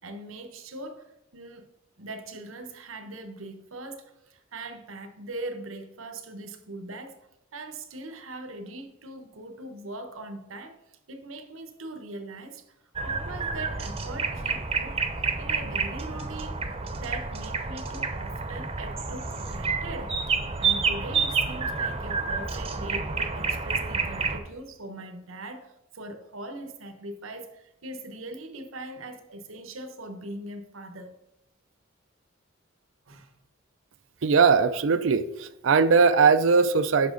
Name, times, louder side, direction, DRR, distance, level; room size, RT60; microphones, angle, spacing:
voice 1, 0.0-1.7 2.0-7.2 7.5-10.8 11.1-15.0 15.4-16.6 17.0-20.2 20.6-31.2 33.1-33.3, right 2 dB, 85° right, 1.1 m, -41 dB
sound 1, 13.0-24.4, right 5 dB, 30° right, 0.8 m, -29 dB
voice 2, 34.2-37.1, right 5 dB, 70° right, 0.5 m, -20 dB
10.5 x 6.0 x 3.8 m
head